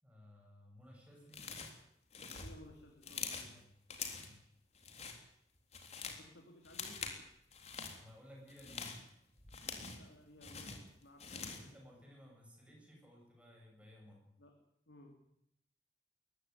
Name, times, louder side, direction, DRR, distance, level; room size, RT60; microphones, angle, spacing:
voice 1, 0.0-1.5 3.4-3.7 4.1-4.5 8.0-8.9 11.5-14.3, equal, 5° right, 0 dB, 8.0 m, -58 dB
sound 1, 1.3-1.8 2.1-3.5 3.9-4.4 4.7-5.2 5.6-6.2 6.6-7.2 7.5-8.0 8.5-10.1 10.4-11.7, left 5 dB, 35° left, 3.6 m, -45 dB
voice 2, 2.4-3.6 6.0-7.3 9.9-11.7 14.4-14.5 14.9-15.2, left 1 dB, 85° left, 2 dB, 3.4 m, -58 dB
21.5 x 15.5 x 9.8 m, 0.76 s
head